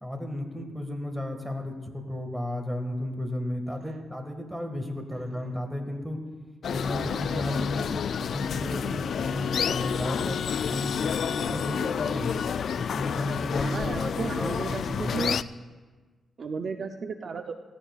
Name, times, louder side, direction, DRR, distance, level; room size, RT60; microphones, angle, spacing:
voice 1, 0.0-6.2 6.7-12.3 12.8-15.1, left 1 dB, 5° right, 4 dB, 1.8 m, -33 dB
voice 2, 5.1-5.5 13.2-13.4 13.6-15.4 16.4-17.5, right 4 dB, 55° right, 6 dB, 0.6 m, -34 dB
sound 1, 6.6-15.4, left 7 dB, 65° left, 0.3 m, -29 dB
17.5 x 14.5 x 2.4 m, 1.4 s
cardioid pair, 90°, 0 cm